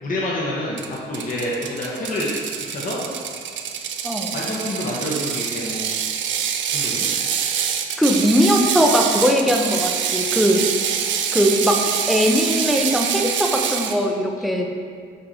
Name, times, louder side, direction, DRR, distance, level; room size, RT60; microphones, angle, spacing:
voice 1, 0.0-2.3 2.7-3.0 4.3-5.9 6.7-7.1, left 1 dB, 40° left, -5 dB, 1.1 m, -27 dB
Ratchet pawl, 0.8-14.0, right 8 dB, 70° right, 0.5 m, -25 dB
voice 2, 8.0-10.6 11.3-11.7 12.1-14.8, equal, ahead, 0 dB, 0.7 m, -19 dB
5.5 x 4.3 x 4.3 m, 2.1 s
cardioid pair, 90°, 20 cm